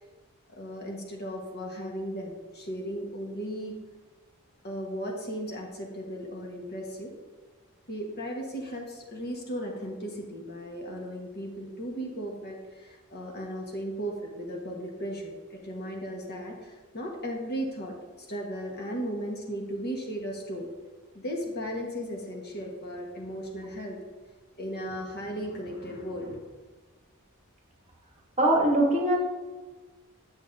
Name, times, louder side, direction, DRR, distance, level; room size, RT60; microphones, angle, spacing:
voice 1, 0.5-3.7 4.6-7.1 7.9-20.7 21.1-24.0 24.6-26.4, equal, 45° left, 0 dB, 1.3 m, -36 dB
voice 2, 28.4-29.2, right 1 dB, 30° right, 0 dB, 1.2 m, -22 dB
9.1 x 7.1 x 2.6 m, 1.3 s
head